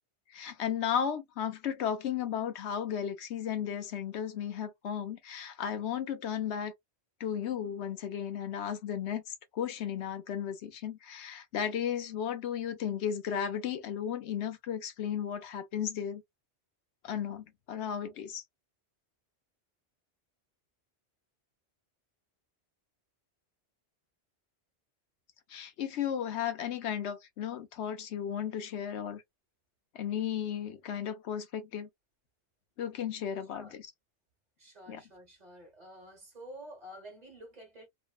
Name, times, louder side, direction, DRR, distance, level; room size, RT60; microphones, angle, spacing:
voice 1, 0.3-6.7 7.2-16.2 17.0-18.4 25.5-29.2 29.9-31.9 32.8-33.9 34.9-35.0, left 9 dB, 80° left, 1.0 m, -34 dB
voice 2, 34.6-37.9, right 1 dB, 40° right, 1.3 m, -49 dB
3.0 x 2.1 x 2.3 m
omnidirectional pair, 1.1 m